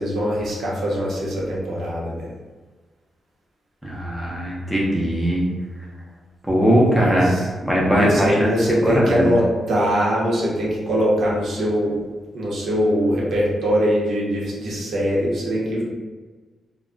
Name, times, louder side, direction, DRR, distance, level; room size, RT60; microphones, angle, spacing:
voice 1, 0.0-2.3 6.8-7.5 7.9-12.0 12.3-15.8, equal, 70° right, -5 dB, 0.7 m, -22 dB
voice 2, 3.8-5.4 6.5-7.3 7.6-8.5 8.8-9.3, equal, ahead, -4 dB, 0.6 m, -19 dB
2.3 x 2.0 x 3.7 m, 1.4 s
wide cardioid pair, 175°, 0 cm